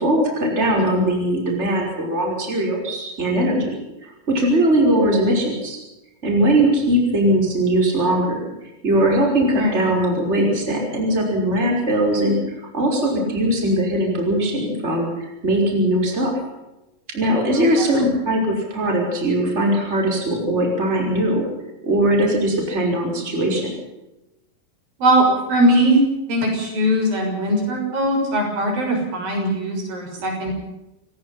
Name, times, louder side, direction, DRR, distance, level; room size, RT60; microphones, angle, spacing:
voice 1, 0.0-3.7 4.3-5.8 6.2-8.4 8.8-12.4 12.7-16.3 17.1-21.5 21.8-23.7, right 1 dB, 15° right, 1 dB, 5.7 m, -20 dB
voice 2, 25.0-26.0 26.3-30.5, right 1 dB, 65° right, 2 dB, 8.2 m, -20 dB
27.5 x 19.0 x 5.8 m, 0.97 s
omnidirectional pair, 4.4 m